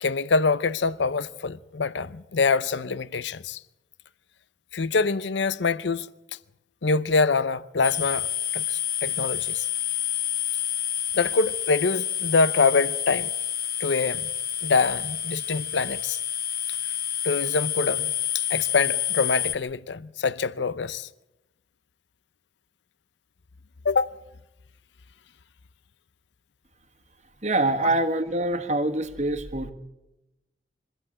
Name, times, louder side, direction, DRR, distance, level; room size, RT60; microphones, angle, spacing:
voice 1, 0.0-3.6 4.7-6.1 6.8-9.7 11.1-13.3 13.8-14.3 14.6-16.2 17.2-21.1 23.8-24.2, left 4 dB, 80° left, 0.6 m, -25 dB
sound 1, 7.8-19.5, left 10 dB, 50° left, 1.4 m, -29 dB
voice 2, 27.4-29.7, right 2 dB, 40° right, 1.5 m, -25 dB
24.0 x 14.5 x 8.7 m
head